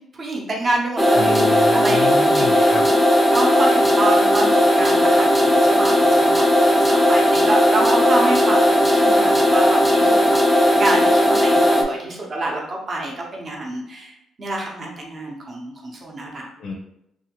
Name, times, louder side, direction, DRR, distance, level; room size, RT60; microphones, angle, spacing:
voice 1, 0.2-1.4 1.7-2.9 3.3-14.1 14.4-16.5, right 2 dB, 40° right, -1 dB, 0.8 m, -27 dB
sound 1, 1.0-11.8, equal, ahead, 0.5 m, -16 dB
voice 2, 1.1-2.9 16.6-16.7, left 4 dB, 70° left, 1 dB, 0.5 m, -29 dB
2.7 x 2.5 x 2.9 m, 0.79 s
cardioid pair, 90°, 0 cm